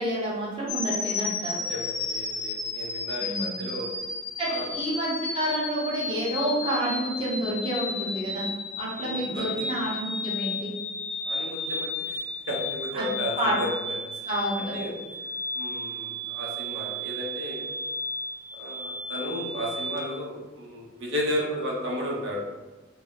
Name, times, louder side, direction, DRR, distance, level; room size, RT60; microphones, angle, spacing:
voice 1, 0.0-1.6 3.2-3.7 4.4-8.5 8.8-10.7 12.9-13.1 13.4-13.5 14.3-14.7, right 1 dB, 25° right, -7 dB, 0.9 m, -29 dB
voice 2, 0.6-0.9 1.7-3.9 4.5-4.7 9.0-9.7 11.3-12.2 12.5-14.0 14.7-14.9 15.5-17.7 18.6-22.4, equal, 70° right, -2 dB, 0.8 m, -33 dB
sound 1, 0.7-20.0, left 2 dB, 60° left, 0.6 m, -33 dB
2.8 x 2.1 x 3.9 m, 1.2 s
head